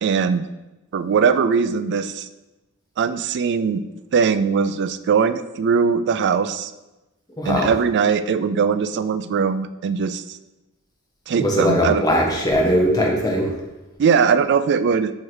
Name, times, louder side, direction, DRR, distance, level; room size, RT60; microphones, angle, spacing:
voice 1, 0.0-0.5 0.9-2.3 3.0-3.8 4.1-6.7 7.4-10.4 11.3-12.0 14.0-15.1, right 6 dB, 50° right, 12 dB, 0.3 m, -20 dB
voice 2, 7.4-7.7 11.4-13.6, equal, 15° left, -1 dB, 1.1 m, -20 dB
4.7 x 4.5 x 4.7 m, 1.0 s
head